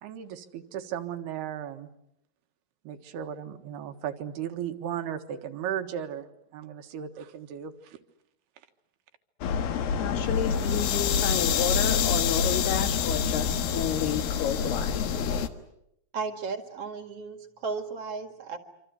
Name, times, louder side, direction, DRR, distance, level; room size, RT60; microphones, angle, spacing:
voice 1, 0.0-1.9 2.9-8.0, right 9 dB, 85° right, 6 dB, 3.6 m, -36 dB
sound 1, 9.4-15.5, left 7 dB, 70° left, 3.1 m, -26 dB
voice 2, 10.0-15.1, left 8 dB, 90° left, 6 dB, 4.1 m, -31 dB
voice 3, 16.1-18.6, right 4 dB, 45° right, 6 dB, 2.4 m, -35 dB
26.5 x 26.0 x 8.2 m, 0.80 s
omnidirectional pair, 4.4 m